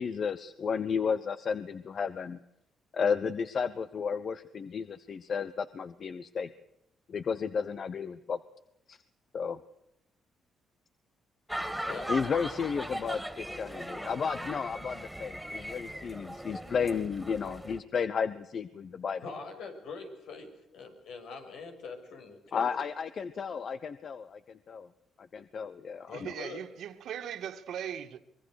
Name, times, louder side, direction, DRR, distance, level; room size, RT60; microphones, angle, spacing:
voice 1, 0.0-2.4 2.9-6.5 7.1-8.4 8.9-9.0 9.3-9.6 12.1-19.2 22.5-24.9 25.2-26.3, left 6 dB, 50° left, 1.0 m, -33 dB
sound 1, 11.5-17.8, equal, ahead, 3.0 m, -39 dB
voice 2, 11.9-12.2 19.2-22.8 26.1-26.6, left 4 dB, 80° left, 6.7 m, -43 dB
voice 3, 26.1-28.2, right 9 dB, 75° right, 2.0 m, -39 dB
24.5 x 22.5 x 6.5 m
cardioid pair, 90°, 0 cm